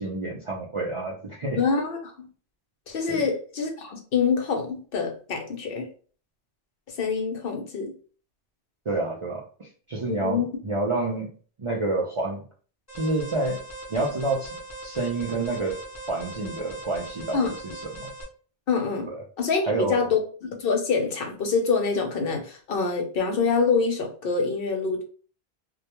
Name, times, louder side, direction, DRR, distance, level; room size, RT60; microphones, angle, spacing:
voice 1, 0.0-1.6 3.1-3.2 8.9-11.3 11.6-12.4 12.9-13.6 13.9-15.8 16.1-17.4 17.7-18.1 19.1-19.2 19.6-20.1, right 2 dB, 50° right, -3 dB, 0.4 m, -28 dB
voice 2, 1.6-2.3 2.9-5.9 7.0-7.9 10.1-10.5 17.3-17.5 18.7-19.1 19.4-20.2 20.6-25.0, left 5 dB, 65° left, 3 dB, 0.8 m, -25 dB
Alarm, 12.9-18.2, right 2 dB, 20° left, 0.6 m, -40 dB
2.2 x 2.2 x 2.8 m, 0.41 s
omnidirectional pair, 1.1 m